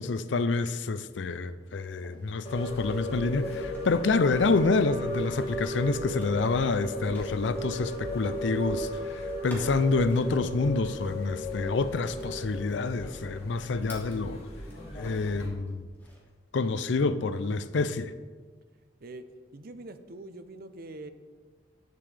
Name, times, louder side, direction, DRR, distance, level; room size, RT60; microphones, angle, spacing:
voice 1, 0.0-14.4 14.9-15.9 16.5-18.1, left 3 dB, 65° left, 0.5 m, -28 dB
sound 1, 1.6-15.0 15.4-16.5, equal, 10° left, 1.8 m, -54 dB
sound 2, 2.5-15.5, equal, 30° left, 2.3 m, -35 dB
voice 2, 19.5-21.1, right 2 dB, 50° right, 0.6 m, -43 dB
10.5 x 9.1 x 3.3 m
head